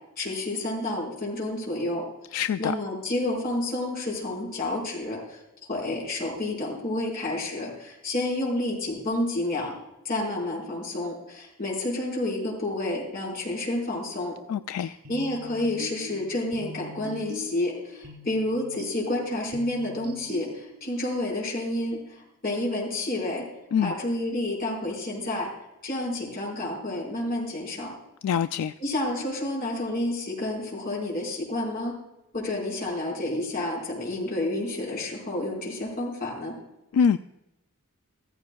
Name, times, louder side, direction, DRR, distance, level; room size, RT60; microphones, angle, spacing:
voice 1, 0.2-2.1 2.6-9.7 10.0-14.4 14.8-23.5 23.8-25.5 25.8-27.9 28.8-31.9 32.3-36.6, left 1 dB, 45° left, -2 dB, 4.7 m, -30 dB
voice 2, 2.3-2.7 14.5-15.0 23.7-23.9 28.2-28.7 36.9-37.2, left 7 dB, 75° left, 11 dB, 0.3 m, -24 dB
sound 1, 15.0-21.0, left 1 dB, 75° right, 1.6 m, -42 dB
15.5 x 15.0 x 2.3 m, 0.94 s
head